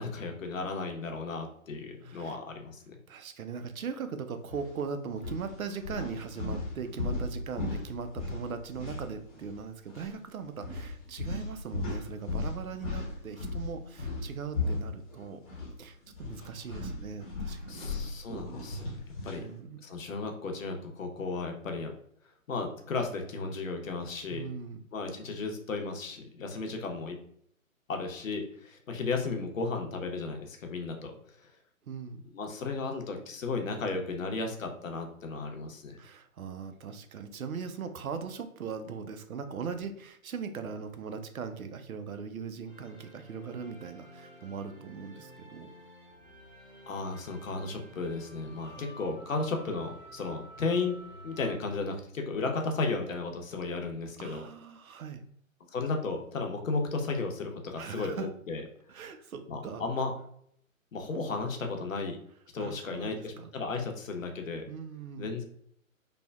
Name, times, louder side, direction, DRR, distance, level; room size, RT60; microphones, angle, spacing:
voice 1, 0.0-3.0 17.7-18.9 19.2-19.4 19.8-21.9 22.5-24.5 24.9-27.2 27.9-31.5 32.3-36.0 46.9-51.0 51.2-54.4 55.7-58.6 59.5-60.1 60.9-62.2 62.5-64.6 65.2-65.4, left 3 dB, 70° left, 4 dB, 0.7 m, -34 dB
voice 2, 2.0-2.4 3.1-15.4 15.8-17.8 19.4-19.8 24.3-24.8 31.8-32.2 36.0-45.7 48.6-49.0 52.6-52.8 54.2-55.2 57.8-58.3 58.9-59.8 62.6-63.5 64.7-65.3, right 6 dB, 90° right, 9 dB, 0.5 m, -40 dB
sound 1, 4.5-4.7 5.1-9.6 9.9-10.1 10.6-15.7 16.0-19.5, left 3 dB, 25° left, 0.7 m, -36 dB
sound 2, 42.7-51.6, right 1 dB, 20° right, 0.6 m, -51 dB
3.2 x 2.1 x 2.2 m, 0.66 s
figure-of-eight pair, 145°, 41 cm